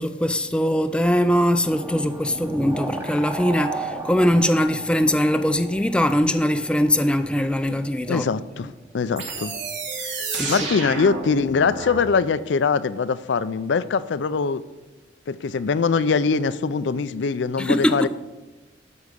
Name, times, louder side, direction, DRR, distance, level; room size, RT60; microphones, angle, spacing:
voice 1, 0.0-8.2 10.3-10.5 17.6-18.1, equal, 5° left, 0.3 m, -21 dB
sound 1, 1.6-8.6, right 2 dB, 10° right, 0.8 m, -34 dB
voice 2, 8.1-9.5 10.5-14.6 15.3-18.1, left 5 dB, 75° left, 0.4 m, -22 dB
sound 2, 9.2-12.0, right 3 dB, 80° right, 2.6 m, -30 dB
12.5 x 4.8 x 6.6 m
head